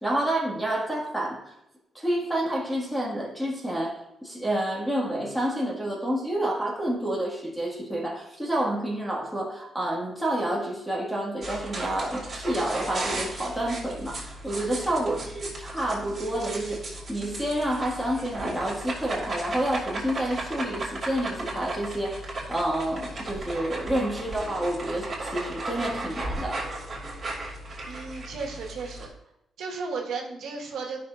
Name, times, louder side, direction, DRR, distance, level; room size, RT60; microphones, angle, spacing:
voice 1, 0.0-1.4 1.9-22.2 22.5-26.6, right 1 dB, 5° left, -2 dB, 1.7 m, -29 dB
sound 1, 11.4-29.1, right 2 dB, 30° right, 2.8 m, -35 dB
voice 2, 27.9-29.1 29.6-31.0, right 4 dB, 85° right, 0 dB, 1.4 m, -35 dB
13.5 x 5.9 x 2.5 m, 0.85 s
wide cardioid pair, 165°, 0 cm